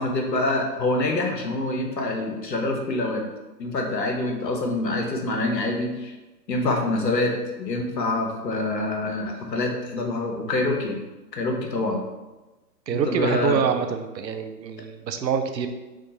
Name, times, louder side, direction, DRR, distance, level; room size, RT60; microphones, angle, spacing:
voice 1, 0.0-3.2 3.6-6.1 6.5-7.3 7.6-11.0 11.4-12.0 12.9-13.6, left 2 dB, 80° left, 2 dB, 0.9 m, -26 dB
voice 2, 12.9-15.7, right 7 dB, 85° right, 7 dB, 0.6 m, -25 dB
3.6 x 2.4 x 3.9 m, 1.1 s
figure-of-eight pair, 130°, 49 cm